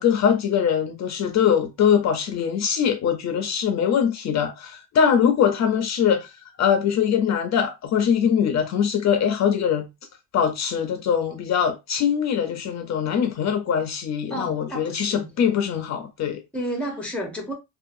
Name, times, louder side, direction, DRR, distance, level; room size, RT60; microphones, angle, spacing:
voice 1, 0.0-6.3 6.6-9.9 10.3-16.4, left 8 dB, 50° left, 0.6 m, -22 dB
voice 2, 14.3-15.4 16.5-17.5, right 1 dB, 5° left, 0.7 m, -31 dB
2.6 x 2.4 x 2.5 m
cardioid pair, 145°, 35 cm